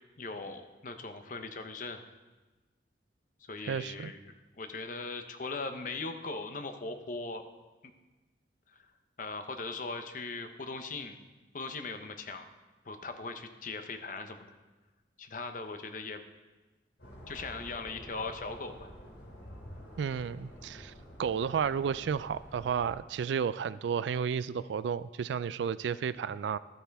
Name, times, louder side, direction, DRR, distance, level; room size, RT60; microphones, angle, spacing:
voice 1, 0.2-2.0 3.5-7.4 8.7-8.8 9.2-11.2 11.5-12.5 12.8-14.5 15.2-16.2 17.3-18.9, left 3 dB, 45° left, 7 dB, 0.7 m, -39 dB
voice 2, 3.7-4.1 20.0-20.9 21.2-26.6, right 7 dB, 75° right, 16 dB, 0.3 m, -32 dB
sound 1, 17.0-22.9, equal, 75° left, 3.0 m, -49 dB
12.5 x 8.6 x 3.5 m, 1.2 s
head